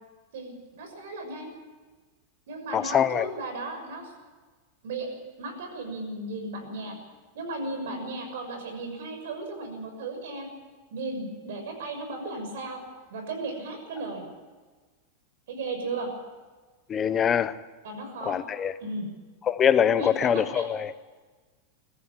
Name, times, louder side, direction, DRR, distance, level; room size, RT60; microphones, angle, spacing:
voice 1, 0.3-1.5 2.5-4.1 4.8-6.9 7.3-10.5 10.9-12.8 13.1-14.2 15.5-16.1 17.8-18.4 18.8-19.1 20.0-20.7, right 2 dB, 70° right, 6.5 m, -35 dB
voice 2, 2.7-3.3 16.9-17.6 18.2-18.7 19.5-20.9, left 8 dB, 15° left, 0.7 m, -23 dB
22.5 x 14.5 x 8.7 m
supercardioid pair, 175°, 0 cm